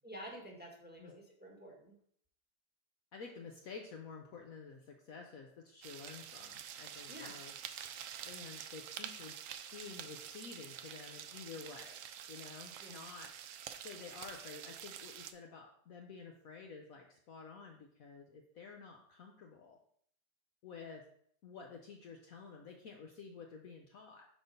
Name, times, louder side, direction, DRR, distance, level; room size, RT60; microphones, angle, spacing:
voice 1, 0.0-2.0 7.1-7.3 12.8-13.0, equal, 5° right, -1 dB, 1.1 m, -50 dB
voice 2, 3.1-7.5 8.2-9.4 9.7-12.0 12.3-13.3 13.8-19.8 20.6-21.0 21.4-24.3, left 5 dB, 65° left, 2 dB, 1.0 m, -51 dB
sound 1, 5.8-15.3, right 9 dB, 85° right, 0.7 m, -48 dB
5.9 x 4.1 x 5.2 m, 0.64 s
omnidirectional pair, 1.9 m